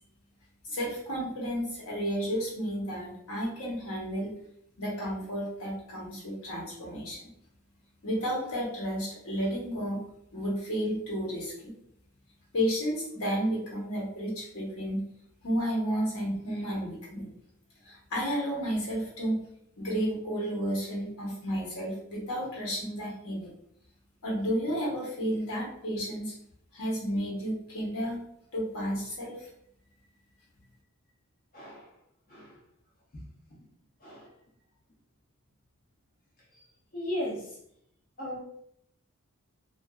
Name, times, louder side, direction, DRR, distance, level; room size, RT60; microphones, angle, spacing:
voice 1, 0.6-4.3 4.8-7.2 8.0-10.0 10.3-11.7 12.5-15.0 15.4-17.3 17.8-19.4 19.8-23.5 24.2-26.3 26.7-28.2 28.5-29.5, equal, 75° left, -5 dB, 1.0 m, -32 dB
voice 2, 31.5-31.9 32.3-32.6 33.1-33.2 34.0-34.3 36.5-36.6 36.9-37.6 38.2-38.4, left 1 dB, 40° left, -4 dB, 0.5 m, -36 dB
2.4 x 2.3 x 2.3 m, 0.73 s
head